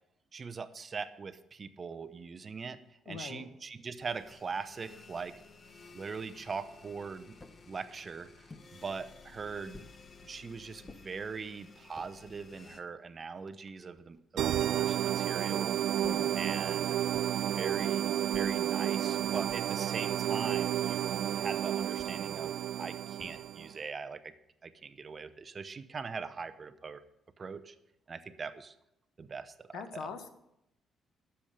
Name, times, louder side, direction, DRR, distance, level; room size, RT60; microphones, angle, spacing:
voice 1, 0.3-2.8 3.1-5.3 5.9-7.4 7.7-8.3 8.7-9.9 10.2-15.7 16.3-17.0 17.5-22.5 22.8-24.3 24.6-27.0 27.4-27.7 28.1-28.7 29.2-30.1, right 5 dB, 40° right, 11 dB, 0.9 m, -41 dB
voice 2, 3.1-3.4 16.0-16.4 29.7-30.3, left 6 dB, 80° left, 8 dB, 1.3 m, -42 dB
sound 1, 4.0-12.8, left 4 dB, 40° left, 1.3 m, -55 dB
sound 2, 7.4-7.6 8.5-8.7 9.7-10.0 10.9-11.0 11.8-12.1 12.9-13.0 13.2-14.2 16.0-16.4 17.1-17.5 18.3-18.7 19.5-19.8 20.6-20.9 22.0-22.2 23.2-23.6, left 2 dB, 20° left, 1.0 m, -54 dB
sound 3, 14.4-23.7, right 11 dB, 80° right, 0.3 m, -31 dB
12.5 x 7.2 x 6.5 m, 0.83 s
cardioid pair, 90°, 0 cm